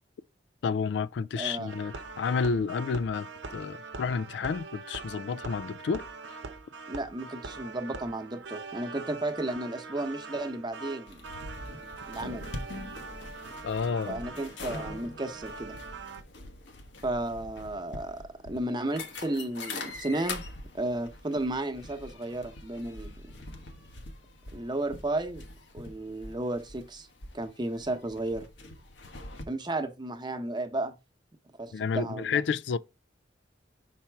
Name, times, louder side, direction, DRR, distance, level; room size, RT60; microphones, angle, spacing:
voice 1, 0.6-6.1 13.6-14.2 31.7-32.8, left 5 dB, 70° left, 0.3 m, -30 dB
voice 2, 1.4-1.7 6.9-11.3 12.1-12.5 14.1-15.8 17.0-20.4 20.7-23.3 24.5-25.4 25.7-27.1 27.3-28.5 29.5-30.9 31.6-32.4, right 2 dB, 25° right, 0.9 m, -33 dB
sound 1, 1.7-16.2, right 4 dB, 85° right, 0.8 m, -43 dB
sound 2, 11.1-29.4, left 2 dB, 90° left, 1.2 m, -43 dB
5.7 x 4.2 x 4.5 m
head